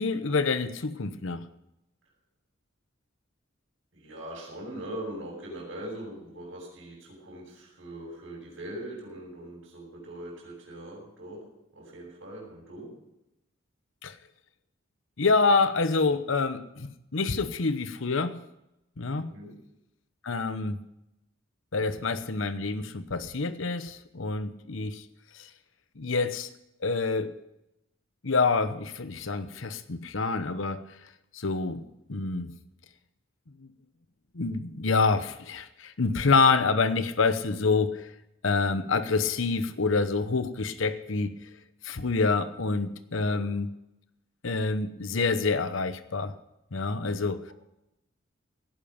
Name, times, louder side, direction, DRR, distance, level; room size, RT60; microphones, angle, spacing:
voice 1, 0.0-1.5 14.0-14.2 15.2-18.4 19.0-19.3 20.2-20.8 21.7-25.0 25.3-25.5 26.0-26.5 26.8-27.4 28.2-30.8 31.3-32.5 33.6-33.7 34.3-38.1 38.4-41.3 41.8-43.7 44.4-46.3 46.7-47.4, left 4 dB, 70° left, 12 dB, 0.9 m, -27 dB
voice 2, 3.9-11.4 11.7-12.9 19.2-19.6 43.2-43.5, right 1 dB, 75° right, -4 dB, 6.4 m, -41 dB
17.5 x 10.5 x 5.2 m, 0.88 s
head